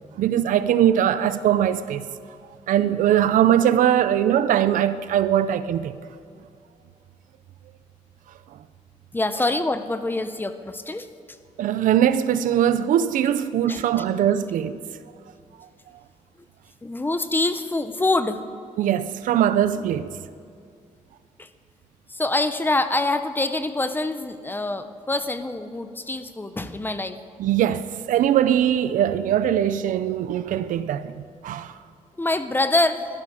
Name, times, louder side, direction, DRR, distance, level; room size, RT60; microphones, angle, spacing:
voice 1, 0.2-2.1 2.7-5.9 11.6-14.8 18.8-20.1 27.4-31.7, right 10 dB, 90° right, 0.6 m, -21 dB
voice 2, 9.1-11.1 13.7-13.8 16.8-18.4 21.4-21.5 22.1-27.2 32.2-33.1, left 2 dB, 15° left, 0.8 m, -25 dB
20.5 x 12.5 x 4.9 m
cardioid pair, 100°, 13 cm